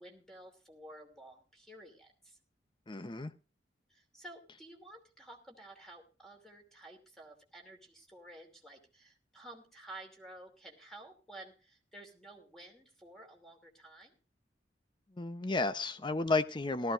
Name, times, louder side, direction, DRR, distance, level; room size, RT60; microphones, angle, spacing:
voice 1, 0.0-2.4 3.9-14.1, right 1 dB, ahead, 2 dB, 2.7 m, -52 dB
voice 2, 2.9-3.3 15.1-16.9, left 3 dB, 25° left, 12 dB, 0.7 m, -32 dB
18.0 x 13.5 x 2.5 m, 0.34 s
head